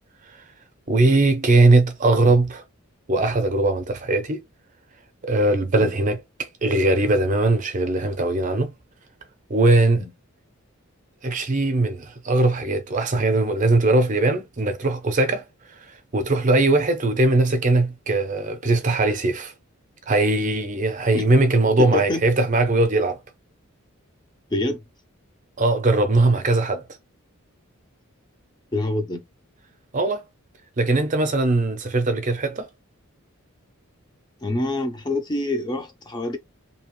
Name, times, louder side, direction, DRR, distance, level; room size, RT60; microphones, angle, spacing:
voice 1, 0.9-2.6 3.1-4.4 5.2-8.7 9.5-10.1 11.2-19.5 20.1-23.2 25.6-26.9 29.9-30.2 30.8-32.7, right 2 dB, 35° right, 0.6 m, -20 dB
voice 2, 21.8-22.2 24.5-24.8 28.7-29.2 34.4-36.4, left 2 dB, 20° left, 0.4 m, -26 dB
2.8 x 2.3 x 3.0 m
head